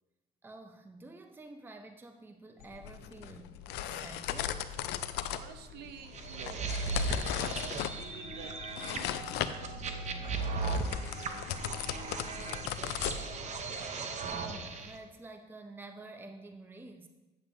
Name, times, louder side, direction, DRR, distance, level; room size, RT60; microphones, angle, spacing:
voice 1, 0.4-4.8 14.3-17.1, right 2 dB, 10° right, 6 dB, 0.5 m, -49 dB
sound 1, 2.6-13.8, left 11 dB, 85° left, 0.4 m, -38 dB
voice 2, 5.3-6.7 7.1-13.8, right 8 dB, 75° right, 7 dB, 0.8 m, -51 dB
sound 2, 6.1-14.9, right 3 dB, 45° right, 0.8 m, -37 dB
9.1 x 7.2 x 2.6 m, 1.1 s
cardioid pair, 110°, 17 cm